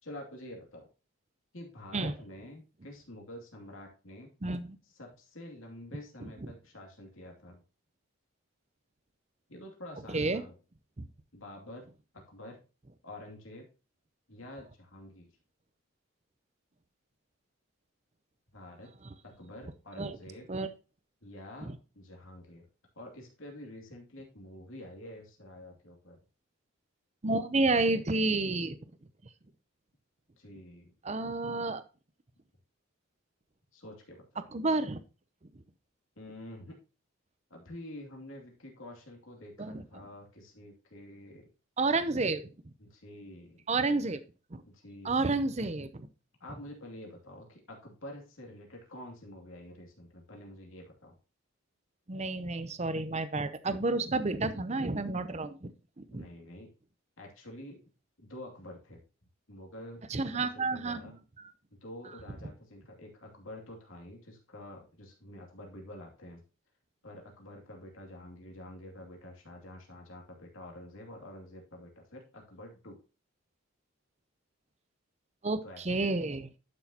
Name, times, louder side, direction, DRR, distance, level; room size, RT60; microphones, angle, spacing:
voice 1, 0.0-0.9 1.5-4.3 4.9-7.6 9.5-10.5 11.3-11.9 12.1-12.6 13.0-13.7 14.3-15.3 18.5-18.9 19.2-20.5 21.2-22.7 22.9-26.2 30.4-30.9 33.7-34.5 36.2-36.8 37.5-41.5 42.8-43.6 44.6-45.3 46.4-51.1 56.1-56.7 57.2-57.8 58.2-59.0 59.5-60.1 60.3-61.2 61.8-66.4 67.0-73.0 75.6-76.1, left 1 dB, 70° left, 1 dB, 2.6 m, -48 dB
voice 2, 4.4-4.8 10.1-10.4 11.0-11.1 20.0-20.2 20.5-20.7 21.7-21.8 27.2-28.8 31.0-31.8 34.5-35.0 39.6-39.8 41.8-42.4 43.7-44.2 44.5-44.6 45.0-46.1 52.1-56.3 60.1-61.0 61.4-61.5 75.4-76.5, right 3 dB, 30° right, 12 dB, 0.6 m, -30 dB
11.5 x 6.2 x 2.9 m, 0.32 s
head